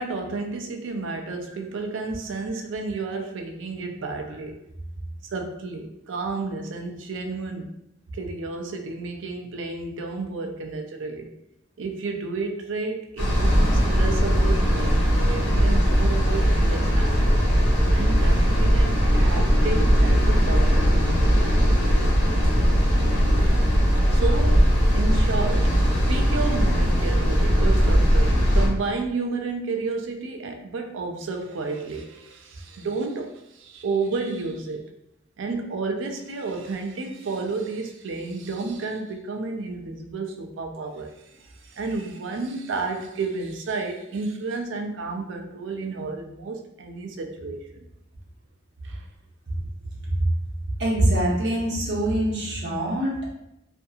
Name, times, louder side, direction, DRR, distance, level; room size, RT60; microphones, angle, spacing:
voice 1, 0.0-4.6 5.3-7.7 8.1-11.3 11.8-17.4 17.9-21.5 24.1-24.7 24.9-25.8 26.1-34.9 35.4-47.9 48.8-49.1, right 3 dB, 80° right, 4 dB, 0.4 m, -31 dB
sound 1, 13.2-28.7, equal, 70° left, 1.0 m, -19 dB
voice 2, 50.8-53.3, right 1 dB, 60° right, -4 dB, 0.8 m, -24 dB
2.6 x 2.5 x 2.3 m, 0.83 s
head